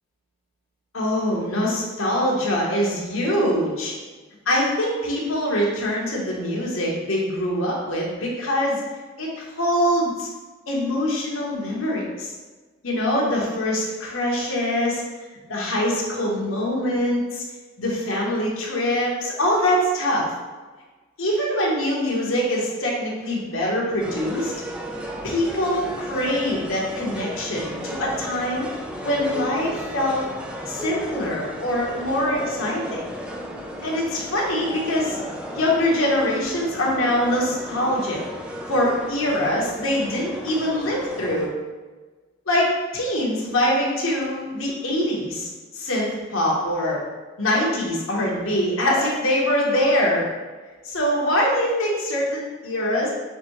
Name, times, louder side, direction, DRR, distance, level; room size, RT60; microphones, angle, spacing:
voice 1, 0.9-3.9 4.5-8.8 9.2-10.3 10.7-12.3 12.8-15.0 15.5-17.4 17.8-20.3 21.2-24.5 25.2-28.7 29.0-30.2 30.7-33.1 33.8-35.2 35.5-38.2 38.7-41.5 42.5-45.5 45.7-47.0 47.4-50.3 50.8-53.1, left 1 dB, 80° left, -3 dB, 1.1 m, -23 dB
sound 1, 24.0-41.5, equal, 5° right, 0.3 m, -34 dB
5.8 x 2.7 x 3.0 m, 1.3 s
head